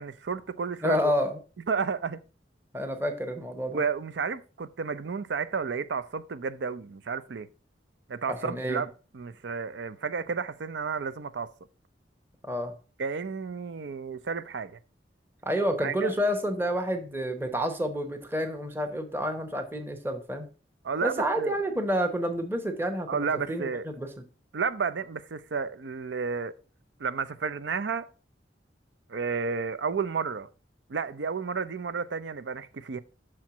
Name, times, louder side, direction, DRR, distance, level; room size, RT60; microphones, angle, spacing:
voice 1, 0.0-1.2 1.7-2.2 3.7-7.5 8.1-11.5 13.0-14.8 15.8-16.1 20.8-21.6 23.1-23.9 24.5-26.5 27.0-28.1 29.1-30.5 30.9-33.0, right 5 dB, 80° right, 0.5 m, -32 dB
voice 2, 0.8-1.4 2.7-3.8 8.3-8.8 12.4-12.7 15.5-20.5 21.0-24.1, equal, 15° right, 0.9 m, -29 dB
6.2 x 4.5 x 5.8 m
head